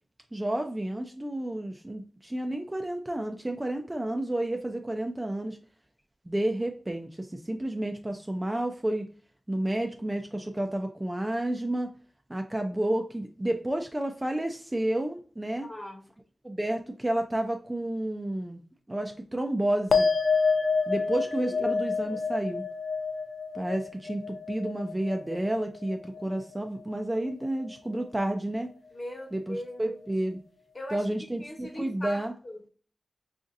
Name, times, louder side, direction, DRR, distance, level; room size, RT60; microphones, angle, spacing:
voice 1, 0.3-5.6 6.3-9.0 9.5-11.9 12.3-15.7 16.4-18.6 18.9-20.1 20.9-22.6 23.5-28.7 29.3-30.4 30.9-32.3, right 1 dB, 15° right, 4 dB, 0.4 m, -31 dB
voice 2, 15.6-16.0 21.4-21.7 22.0-22.2 28.9-29.9 30.7-31.0 31.4-32.7, left 1 dB, 35° left, 1 dB, 1.1 m, -40 dB
sound 1, 19.9-26.6 26.9-27.5, left 4 dB, 65° left, 0.3 m, -29 dB
4.9 x 2.6 x 2.5 m, 0.42 s
wide cardioid pair, 100°, 0 cm